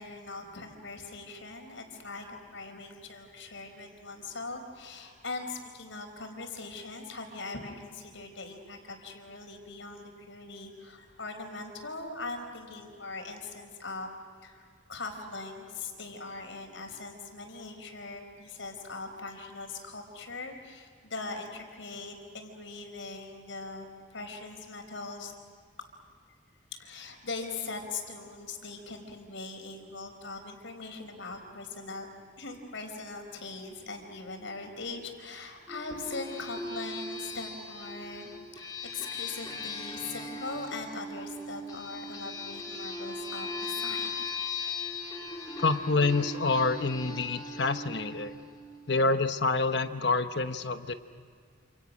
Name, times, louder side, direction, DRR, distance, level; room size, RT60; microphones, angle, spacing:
voice 1, 0.0-14.1 14.4-25.3 26.7-32.1 32.4-44.3, left 3 dB, 75° left, 5 dB, 4.6 m, -41 dB
sound 1, 35.7-48.9, left 3 dB, 20° left, 3.7 m, -38 dB
voice 2, 45.6-48.3 48.9-50.9, left 3 dB, 60° left, 9 dB, 1.1 m, -27 dB
28.5 x 28.0 x 6.3 m, 2.1 s
head